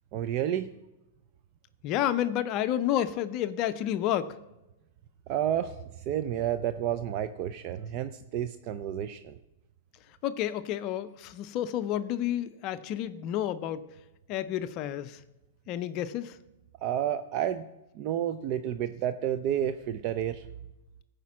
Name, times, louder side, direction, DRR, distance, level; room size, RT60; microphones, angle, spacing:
voice 1, 0.1-0.7 5.3-5.8 6.1-9.4 16.8-17.7 18.0-20.4, right 10 dB, 40° right, 11 dB, 0.5 m, -30 dB
voice 2, 1.8-4.3 10.2-13.8 14.3-15.2 15.7-16.4, left 11 dB, 40° left, 11 dB, 0.5 m, -30 dB
14.0 x 5.1 x 7.2 m, 0.96 s
hypercardioid pair, 140°, 0 cm